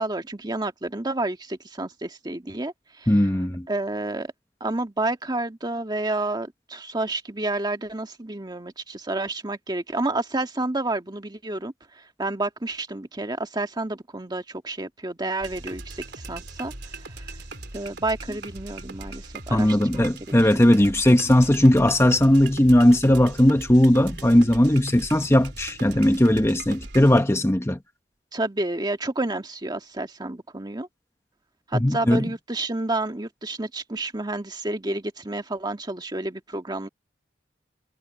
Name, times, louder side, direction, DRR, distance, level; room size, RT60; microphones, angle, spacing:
voice 1, 0.0-2.7 3.0-3.2 3.7-4.3 4.6-11.7 12.2-16.7 17.7-20.1 20.4-20.6 28.3-30.9 31.7-36.9, right 2 dB, 25° right, 1.7 m, -30 dB
voice 2, 3.1-3.6 19.5-27.8 31.7-32.3, left 1 dB, 15° left, 1.1 m, -18 dB
sound 1, 15.4-27.2, right 2 dB, 65° right, 3.8 m, -39 dB
head